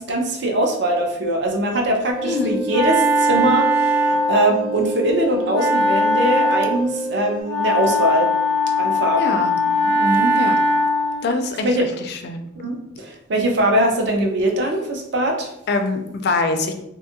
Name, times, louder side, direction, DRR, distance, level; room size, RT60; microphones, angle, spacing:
voice 1, 0.0-8.3 8.8-9.4 9.8-10.3 11.6-11.9 12.6-15.5, right 1 dB, 55° right, 2 dB, 0.5 m, -21 dB
sound 1, 2.1-7.4, equal, 5° right, 0.6 m, -29 dB
voice 2, 2.2-2.6 9.2-9.5 10.3-10.5 11.2-11.7 12.0-12.4 15.7-16.7, left 3 dB, 55° left, 6 dB, 0.3 m, -23 dB
Wind instrument woodwind instrument, 2.2-11.3, equal, 80° right, 1.1 m, -21 dB
2.6 x 2.3 x 2.8 m, 0.81 s
head